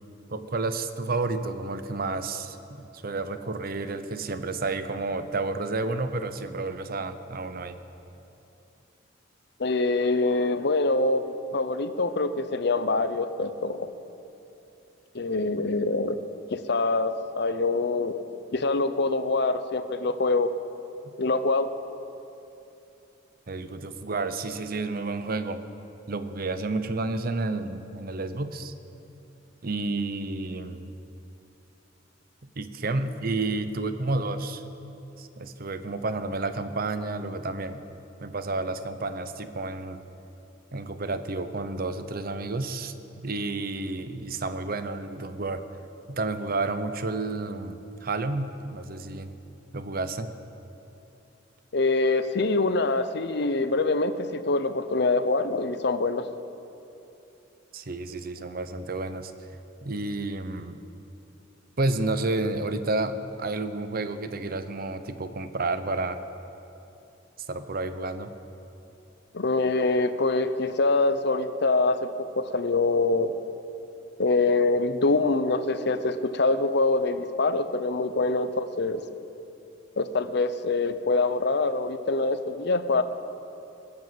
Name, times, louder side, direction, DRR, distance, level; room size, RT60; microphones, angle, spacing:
voice 1, 0.3-7.8 23.5-25.6 26.1-28.7 29.6-30.9 32.5-34.6 35.2-37.8 38.2-40.0 40.7-45.6 46.1-49.4 49.7-50.3 57.7-59.3 59.8-60.8 61.8-66.2 67.5-68.3, right 3 dB, 50° right, 10 dB, 0.8 m, -30 dB
voice 2, 9.6-11.2 11.5-13.9 15.1-16.2 16.5-18.1 18.5-20.5 21.2-21.7 51.7-56.3 69.3-73.3 74.2-79.0 80.0-83.0, left 3 dB, 60° left, 11 dB, 0.7 m, -25 dB
20.5 x 7.7 x 7.7 m, 2.8 s
head